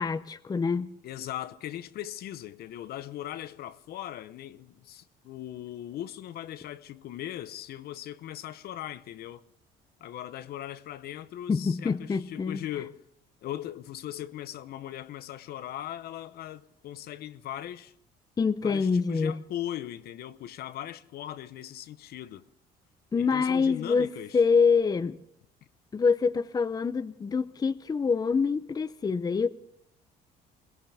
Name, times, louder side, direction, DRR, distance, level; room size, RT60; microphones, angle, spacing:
voice 1, 0.0-0.9 11.5-12.6 18.4-19.4 23.1-25.2 25.9-29.5, left 5 dB, 20° left, 0.6 m, -26 dB
voice 2, 1.0-9.4 10.0-13.0 13.4-17.9 18.6-22.5 23.2-24.4, left 12 dB, 65° left, 0.8 m, -39 dB
22.0 x 19.0 x 3.5 m
cardioid pair, 110°, 17 cm